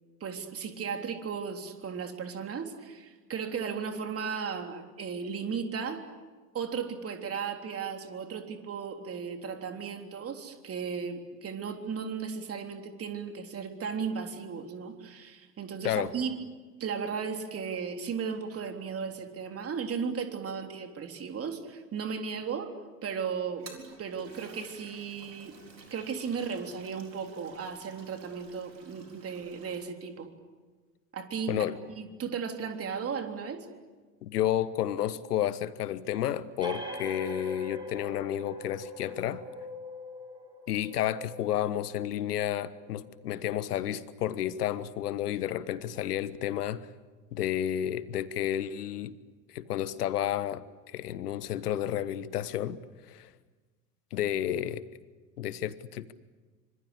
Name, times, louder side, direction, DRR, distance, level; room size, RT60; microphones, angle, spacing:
voice 1, 0.2-6.0 6.5-16.3 16.8-22.7 23.0-23.7 24.0-25.6 25.9-30.3 31.1-31.6 32.0-33.7, right 6 dB, 30° right, 5 dB, 3.5 m, -35 dB
Toilet flush, 23.4-29.8, right 4 dB, 80° right, 4.1 m, -53 dB
voice 2, 34.2-39.4 40.7-46.9 47.3-49.2 49.5-52.8 53.1-53.3 54.1-54.8 55.4-56.1, left 11 dB, 65° left, 16 dB, 1.4 m, -31 dB
sound 1, 36.6-43.8, left 1 dB, 10° right, 7.6 m, -43 dB
26.5 x 25.5 x 8.4 m, 1.3 s
figure-of-eight pair, 80°, 49 cm